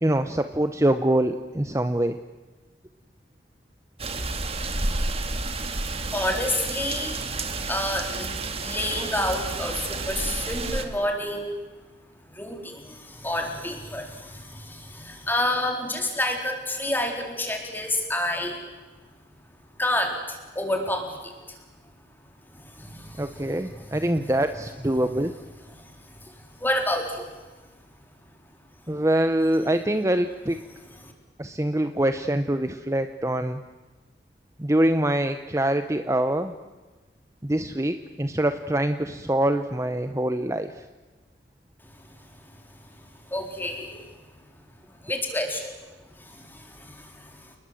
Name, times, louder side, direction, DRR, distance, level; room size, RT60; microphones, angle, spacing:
voice 1, 0.0-2.2 23.2-25.4 28.9-30.6 31.4-33.6 34.6-36.5 37.4-40.8, right 1 dB, 15° right, 9 dB, 0.9 m, -24 dB
sound 1, 4.0-10.9, right 3 dB, 35° right, 2.1 m, -30 dB
voice 2, 6.1-7.2 7.7-8.4 8.6-11.6 12.3-18.6 19.8-21.6 22.5-24.0 25.8-27.3 31.0-31.1 43.0-44.1 45.0-45.7 46.1-47.6, left 1 dB, 10° left, 3 dB, 4.3 m, -29 dB
29.0 x 20.5 x 7.9 m, 1.3 s
head